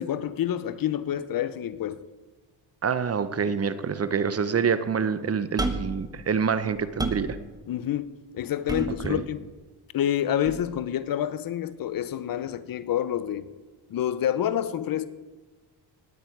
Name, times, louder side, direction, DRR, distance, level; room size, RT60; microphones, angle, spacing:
voice 1, 0.0-2.0 7.7-9.4 9.9-13.5 13.9-15.1, left 10 dB, 55° left, 0.8 m, -28 dB
voice 2, 2.8-7.4 9.1-9.2, right 6 dB, 35° right, 0.9 m, -26 dB
sound 1, 5.6-6.0 6.5-7.3 8.7-9.2 10.5-10.6, right 2 dB, 10° right, 1.1 m, -30 dB
18.5 x 9.3 x 4.7 m
cardioid pair, 90°, 40 cm